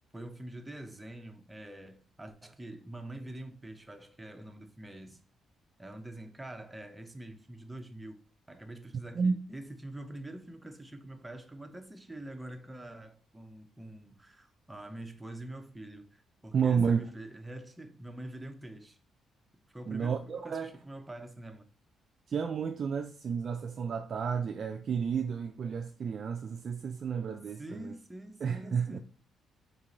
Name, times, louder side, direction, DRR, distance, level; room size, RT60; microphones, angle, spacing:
voice 1, 0.1-5.2 5.8-8.2 8.5-19.0 19.7-21.7 27.6-29.0, right 1 dB, 10° right, 0.7 m, -45 dB
voice 2, 16.5-17.0 19.9-20.7 22.3-27.9 28.4-29.0, right 6 dB, 50° right, 0.3 m, -31 dB
3.9 x 2.8 x 3.8 m
cardioid pair, 90°, 0 cm